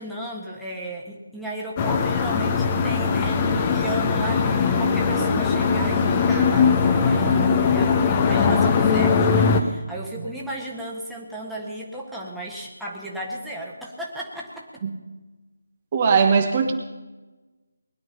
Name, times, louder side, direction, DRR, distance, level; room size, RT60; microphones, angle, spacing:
voice 1, 0.0-14.8, right 1 dB, ahead, -5 dB, 1.6 m, -34 dB
sound 1, 1.8-9.6, left 5 dB, 20° left, 1.1 m, -20 dB
voice 2, 15.9-16.7, right 5 dB, 30° right, 4 dB, 1.3 m, -21 dB
20.5 x 11.0 x 5.6 m, 1.2 s
figure-of-eight pair, 155°, 0 cm